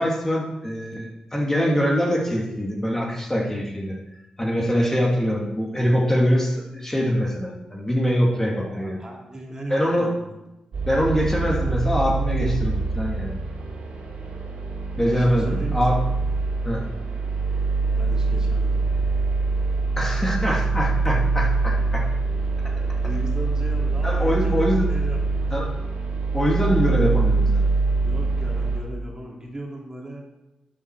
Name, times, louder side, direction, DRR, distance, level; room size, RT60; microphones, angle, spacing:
voice 1, 0.0-3.9 4.4-9.0 9.7-10.1 10.9-13.4 15.0-16.0 16.6-16.8 20.0-22.1 24.0-24.9 25.5-25.7 26.3-27.6, equal, 15° left, -2 dB, 2.6 m, -23 dB
voice 2, 8.3-10.4 15.1-16.1 17.9-19.0 22.8-25.2 28.0-30.2, right 1 dB, 25° right, -1 dB, 2.8 m, -37 dB
sound 1, 10.7-28.8, right 3 dB, 75° right, 2.7 m, -24 dB
11.5 x 7.7 x 4.8 m, 0.98 s
cardioid pair, 55°, 3 cm